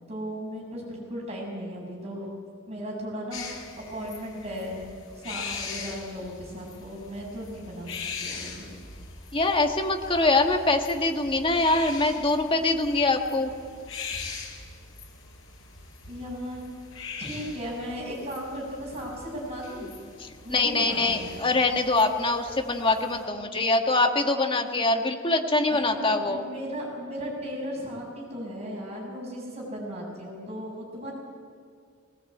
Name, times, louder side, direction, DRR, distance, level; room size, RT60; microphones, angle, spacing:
voice 1, 0.1-2.3 2.7-4.8 5.2-8.8 16.1-16.6 17.2-19.9 20.4-21.4 25.7-31.1, equal, 30° right, -2 dB, 7.6 m, -36 dB
sound 1, 3.3-23.3, left 5 dB, 80° left, 5.1 m, -41 dB
voice 2, 9.3-13.5 20.2-26.4, left 2 dB, 25° left, 3 dB, 1.7 m, -24 dB
20.0 x 19.0 x 8.6 m, 2.1 s
head